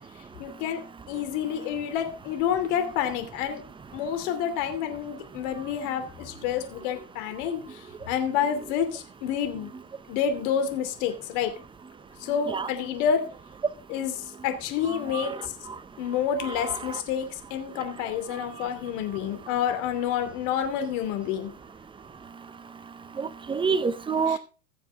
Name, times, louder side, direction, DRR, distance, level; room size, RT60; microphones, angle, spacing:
voice 1, 0.4-0.8 1.1-3.6 3.9-9.7 10.1-11.5 12.2-13.3 13.9-15.5 16.0-21.5 24.3-24.4, left 8 dB, 60° left, 2.8 m, -29 dB
voice 2, 14.9-15.3 16.4-17.0 23.2-24.4, right 5 dB, 10° right, 0.7 m, -28 dB
16.5 x 7.1 x 3.5 m
hypercardioid pair, 120°, 42 cm